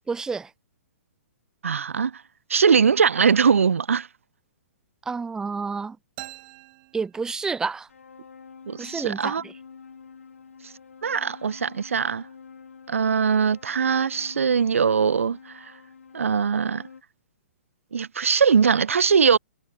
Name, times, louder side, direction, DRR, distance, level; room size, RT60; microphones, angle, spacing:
voice 1, 0.1-0.5 5.1-6.0 6.9-7.9 8.8-9.5, right 4 dB, 10° right, 0.7 m, -29 dB
voice 2, 1.6-2.2 2.5-4.1 8.7-9.4 11.0-12.2 12.9-15.7 16.1-16.8 17.9-19.4, right 6 dB, 90° right, 0.5 m, -21 dB
sound 1, 6.2-7.9, right 24 dB, 40° right, 3.5 m, -44 dB
sound 2, 7.9-17.0, left 6 dB, 85° left, 2.4 m, -47 dB
hypercardioid pair, 130°, 7 cm